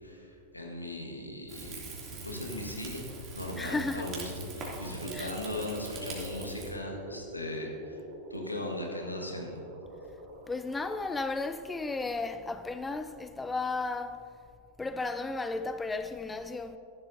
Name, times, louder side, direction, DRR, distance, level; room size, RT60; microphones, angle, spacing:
voice 1, 0.0-2.0 2.2-3.0 3.3-4.2 4.5-8.0 8.3-9.6, left 1 dB, 85° left, 1.7 m, -38 dB
Rain / Fire, 1.5-6.7, right 2 dB, 30° right, 2.8 m, -42 dB
voice 2, 3.6-4.1 5.1-5.3 10.5-14.3 14.8-16.8, left 3 dB, 10° left, 0.4 m, -34 dB
sound 1, 4.9-11.1, right 1 dB, 50° right, 1.7 m, -46 dB
14.5 x 11.5 x 2.7 m
figure-of-eight pair, 90°, 0 cm